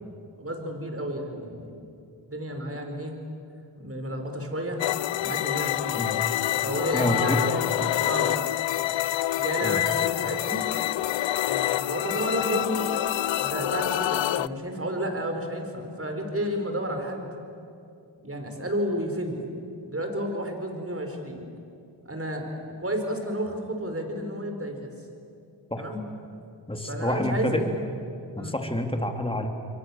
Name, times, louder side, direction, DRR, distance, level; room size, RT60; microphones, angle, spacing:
voice 1, 0.4-1.7 2.3-3.2 3.8-4.8 5.2-6.0 6.6-8.4 9.4-10.6 11.5-12.8 13.4-17.3 18.2-19.5 19.9-21.4 22.0-22.5 22.8-24.8 25.8-26.0 26.9-27.7 28.4-28.5, equal, 30° right, 4 dB, 5.4 m, -31 dB
sound 1, 4.8-14.5, left 14 dB, 70° left, 0.6 m, -27 dB
voice 2, 6.9-7.4 9.6-9.8 25.7-25.8 26.7-27.6 28.4-29.5, left 1 dB, 10° left, 4 dB, 3.4 m, -28 dB
29.0 x 23.0 x 7.5 m, 2.6 s
cardioid pair, 50°, 46 cm